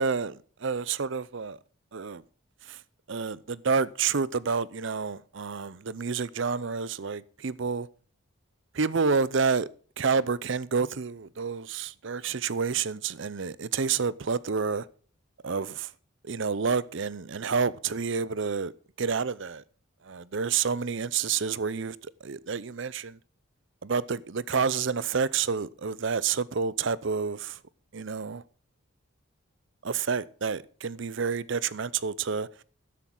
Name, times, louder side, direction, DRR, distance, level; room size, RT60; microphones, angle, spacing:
voice 1, 0.0-1.6 1.9-2.2 2.6-2.8 3.1-7.9 8.7-9.7 10.0-14.9 15.4-15.9 16.2-18.7 19.0-19.6 20.0-23.2 23.8-27.6 27.9-28.4 29.8-32.6, right 5 dB, 60° right, 0.6 m, -29 dB
13.0 x 10.5 x 3.8 m
head